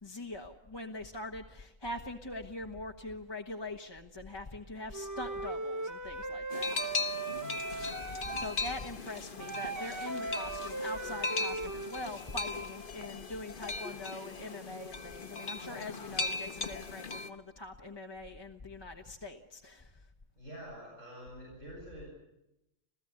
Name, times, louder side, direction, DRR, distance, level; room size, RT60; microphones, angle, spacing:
voice 1, 0.0-7.0 8.3-19.9, left 2 dB, 20° left, 2 dB, 1.3 m, -43 dB
Wind instrument woodwind instrument, 4.9-8.5 9.4-12.0, right 2 dB, 15° right, 0.8 m, -38 dB
sound 1, 6.5-17.3, left 3 dB, 40° left, 1.3 m, -38 dB
voice 2, 20.3-22.1, right 1 dB, 65° right, -3 dB, 8.3 m, -47 dB
28.0 x 15.5 x 9.7 m, 0.88 s
omnidirectional pair, 1.4 m